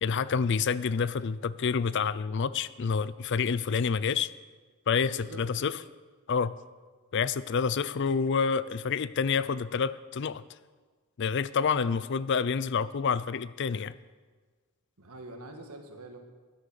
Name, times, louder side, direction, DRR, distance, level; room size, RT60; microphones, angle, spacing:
voice 1, 0.0-4.3 4.9-5.8 6.3-6.5 7.1-10.4 11.2-14.0, left 6 dB, 55° left, 17 dB, 0.4 m, -28 dB
voice 2, 5.1-5.4 11.7-12.1 15.0-16.2, right 1 dB, 90° right, 4 dB, 1.8 m, -45 dB
11.5 x 11.0 x 6.7 m, 1.4 s
head